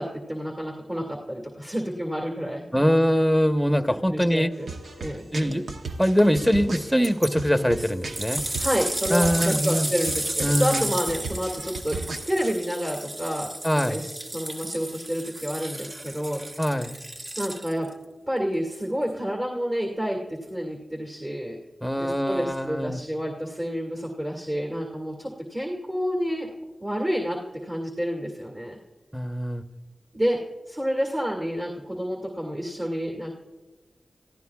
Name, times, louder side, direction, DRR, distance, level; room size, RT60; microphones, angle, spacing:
voice 1, 0.0-2.9 4.1-5.3 8.6-16.4 17.4-17.9 18.3-21.6 21.9-26.5 26.8-28.8 30.1-30.4 30.7-33.3, equal, 25° right, -1 dB, 2.1 m, -29 dB
voice 2, 2.7-4.5 5.3-5.6 6.0-8.4 9.1-9.9 10.4-10.9 13.6-14.0 16.6-16.9 21.8-23.0 29.1-29.6, equal, ahead, 6 dB, 1.0 m, -23 dB
sound 1, 4.5-12.5, right 3 dB, 80° right, 0.9 m, -37 dB
sound 2, 7.0-7.3 7.8-17.9 18.7-18.8, right 1 dB, 45° right, 1.4 m, -32 dB
28.0 x 15.0 x 2.4 m, 1.2 s
cardioid pair, 50°, 0 cm